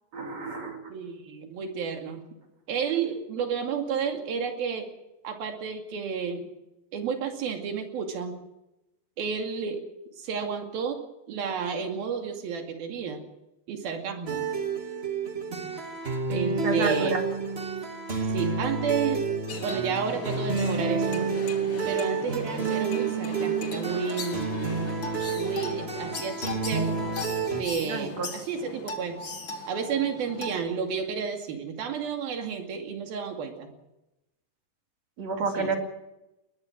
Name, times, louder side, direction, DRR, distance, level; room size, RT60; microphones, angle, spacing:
voice 1, 0.1-0.9 15.5-15.7 16.6-17.3 27.8-28.3 35.2-35.8, right 3 dB, 50° right, 4 dB, 3.5 m, -30 dB
voice 2, 0.9-2.2 2.7-4.9 5.2-6.5 6.9-8.4 9.2-9.8 10.2-11.0 11.3-13.2 13.7-14.5 16.3-17.2 18.3-19.3 19.6-21.3 21.9-24.5 25.3-26.9 27.6-29.2 29.7-33.7 35.4-35.7, right 6 dB, 80° right, 4 dB, 4.3 m, -31 dB
sound 1, 14.3-27.6, right 5 dB, 20° right, 1.9 m, -29 dB
sound 2, 19.5-30.5, left 3 dB, 35° left, 2.7 m, -38 dB
21.5 x 20.0 x 6.3 m, 0.94 s
omnidirectional pair, 4.2 m